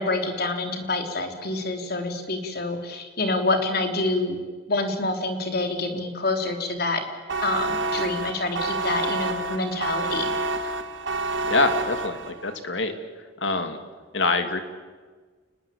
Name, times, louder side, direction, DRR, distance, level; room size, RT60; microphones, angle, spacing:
voice 1, 0.0-4.4 4.7-7.0 7.4-10.3, left 2 dB, 55° left, 4 dB, 3.6 m, -27 dB
sound 1, 7.3-12.5, right 2 dB, 75° right, 1.8 m, -28 dB
voice 2, 11.5-12.9 13.4-13.8 14.1-14.6, left 3 dB, 70° left, 7 dB, 2.7 m, -25 dB
29.5 x 20.5 x 8.7 m, 1.4 s
head